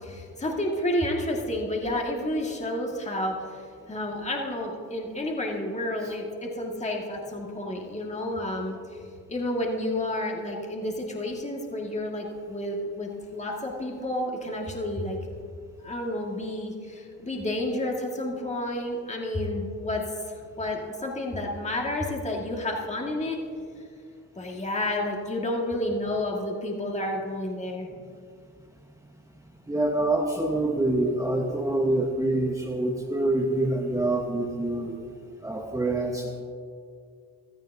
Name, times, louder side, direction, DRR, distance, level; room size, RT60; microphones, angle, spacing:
voice 1, 0.0-8.8 9.3-15.2 15.8-20.1 20.6-23.4 24.4-27.9, left 1 dB, 20° left, 0 dB, 1.8 m, -30 dB
voice 2, 29.7-35.0 35.4-36.4, right 2 dB, 10° right, -1 dB, 1.1 m, -26 dB
15.5 x 13.0 x 2.7 m, 2.3 s
supercardioid pair, 70°, 37 cm